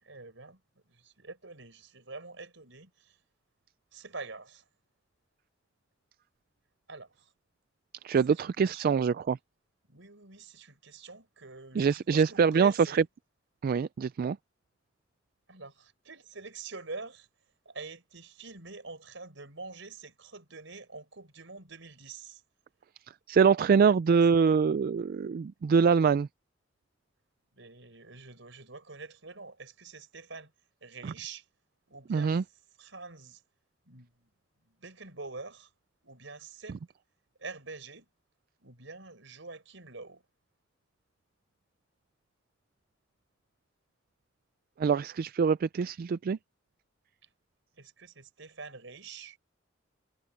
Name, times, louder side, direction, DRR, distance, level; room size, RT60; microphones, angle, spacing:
voice 1, 0.0-0.6 0.9-3.2 3.9-4.6 6.9-7.3 8.3-9.1 9.9-13.1 15.5-17.3 17.7-22.4 23.7-24.4 27.5-30.5 30.8-31.5 31.9-32.4 32.8-33.4 33.9-34.3 34.7-35.7 36.0-36.8 37.4-38.1 38.6-40.2 47.2-47.3 47.8-49.4, right 3 dB, 70° right, 5.7 m, -46 dB
voice 2, 8.0-9.4 11.8-12.7 13.6-14.4 23.3-26.3 31.0-31.1 32.1-32.4 44.8-46.4, right 6 dB, 50° right, 0.3 m, -24 dB
head